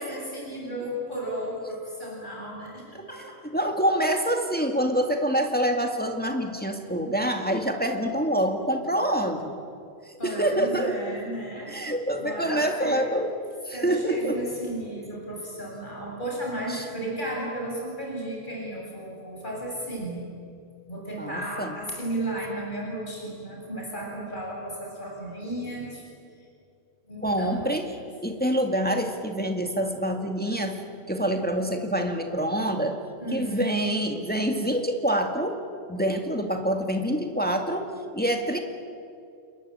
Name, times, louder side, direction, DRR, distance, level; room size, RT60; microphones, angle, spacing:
voice 1, 0.0-3.2 10.2-11.7 12.2-13.0 13.7-20.2 20.9-26.1 27.1-27.6 33.2-33.8, right 1 dB, 40° left, -2 dB, 7.7 m, -34 dB
voice 2, 3.5-9.6 10.2-11.0 11.7-13.3 13.7-14.4 16.7-16.9 21.2-21.7 27.2-27.9 28.2-30.8 31.1-33.0 33.3-35.6 35.9-37.9 38.1-38.6, right 1 dB, 5° left, 4 dB, 2.1 m, -26 dB
29.0 x 21.5 x 8.9 m, 2.4 s
omnidirectional pair, 1.3 m